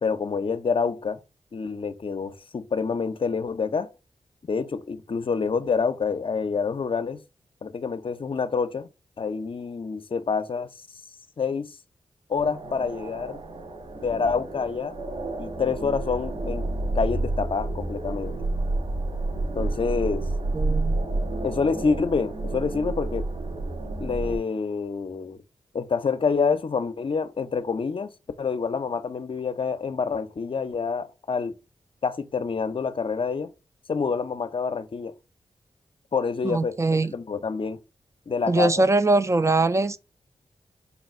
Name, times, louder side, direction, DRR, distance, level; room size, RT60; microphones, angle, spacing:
voice 1, 0.0-1.2 1.5-3.9 4.5-7.2 7.6-8.9 9.2-10.7 11.4-11.7 12.3-13.4 14.0-15.0 15.4-16.7 16.9-18.4 19.5-20.2 21.4-23.3 24.0-25.4 25.7-28.1 28.4-31.5 32.0-33.5 33.9-35.1 36.1-36.8 37.1-37.8 38.3-38.9, left 5 dB, 50° left, 0.6 m, -27 dB
sound 1, 12.3-24.4, right 2 dB, 70° right, 2.4 m, -30 dB
voice 2, 20.5-21.0 36.4-37.1 38.5-40.0, right 2 dB, 25° right, 0.4 m, -22 dB
4.1 x 2.3 x 4.1 m
cardioid pair, 50°, 11 cm